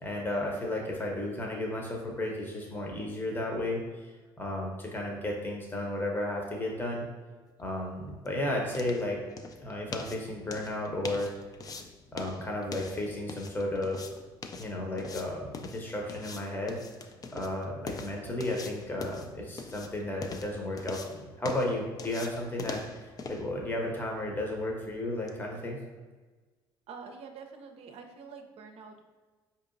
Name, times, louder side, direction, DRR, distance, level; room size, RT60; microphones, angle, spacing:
voice 1, 0.0-4.1 4.4-7.1 7.6-9.2 9.6-11.3 12.1-14.1 14.6-16.8 17.3-25.8, left 1 dB, 20° left, -1 dB, 0.8 m, -33 dB
sound 1, 7.6-25.4, left 4 dB, 35° left, 0.4 m, -44 dB
voice 2, 26.9-29.0, right 5 dB, 60° right, 4 dB, 0.5 m, -46 dB
4.5 x 2.8 x 2.5 m, 1.3 s
hypercardioid pair, 65°, 12 cm